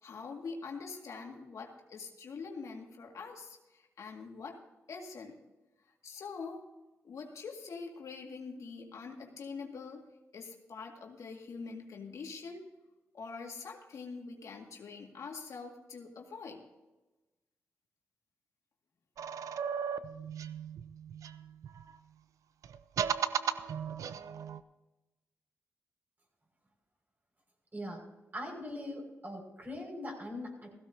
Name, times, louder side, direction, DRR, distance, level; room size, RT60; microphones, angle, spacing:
voice 1, 0.0-4.6 4.9-5.4 6.0-6.7 7.0-10.1 10.3-12.7 13.1-16.6, left 4 dB, 70° left, 1 dB, 2.0 m, -44 dB
sound 1, 19.2-21.9 22.6-24.6, right 7 dB, 80° right, 0.6 m, -36 dB
voice 2, 27.7-28.0 28.3-30.7, left 1 dB, 35° right, 0 dB, 5.7 m, -41 dB
16.5 x 15.5 x 2.7 m, 1.1 s
cardioid pair, 60°, 5 cm